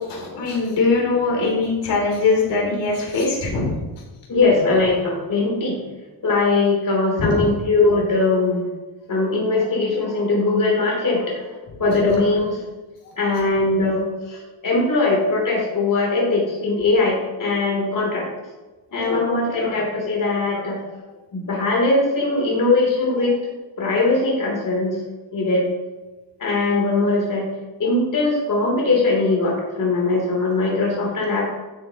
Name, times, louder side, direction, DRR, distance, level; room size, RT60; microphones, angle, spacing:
voice 1, 0.1-3.8 7.2-7.5 19.0-19.2, left 3 dB, 70° left, -2 dB, 3.3 m, -21 dB
voice 2, 4.3-5.8 6.2-8.7 9.1-12.6 13.1-18.3 18.9-20.8 21.3-23.5 23.8-25.0 25.3-25.7 26.4-27.5 27.8-31.5, left 3 dB, 45° left, -2 dB, 3.3 m, -20 dB
12.5 x 7.9 x 3.0 m, 1.2 s
cardioid pair, 125°, 44 cm